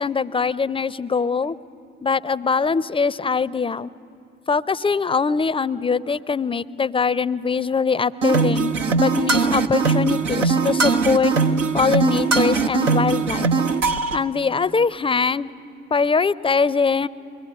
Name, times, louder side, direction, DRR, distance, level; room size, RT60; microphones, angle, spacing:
voice 1, 0.0-1.6 2.0-3.9 4.5-11.3 11.7-13.5 14.1-15.5 15.9-17.1, left 5 dB, 15° left, 20 dB, 0.5 m, -22 dB
sound 1, 8.2-14.2, right 4 dB, 85° right, 0.6 m, -20 dB
22.0 x 17.0 x 9.8 m, 2.8 s
figure-of-eight pair, 45°, 36 cm